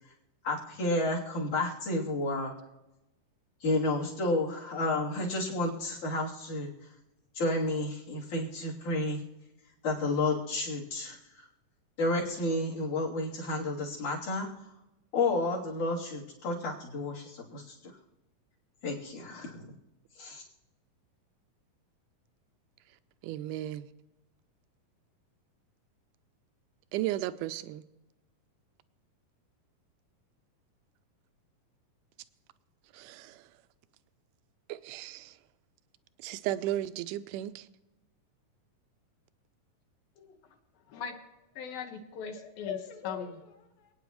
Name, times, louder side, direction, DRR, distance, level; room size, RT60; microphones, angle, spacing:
voice 1, 0.4-2.5 3.6-6.7 7.3-9.2 9.8-11.2 12.0-14.5 15.1-17.8 18.8-19.7 20.2-20.4, left 2 dB, 60° left, 4.4 m, -31 dB
voice 2, 23.2-23.9 26.9-27.8 32.9-33.4 34.7-35.3 36.2-37.6, right 14 dB, 80° right, 2.0 m, -34 dB
voice 3, 40.9-41.2 41.6-43.9, left 7 dB, 90° left, 3.2 m, -39 dB
27.0 x 9.4 x 3.1 m
omnidirectional pair, 4.0 m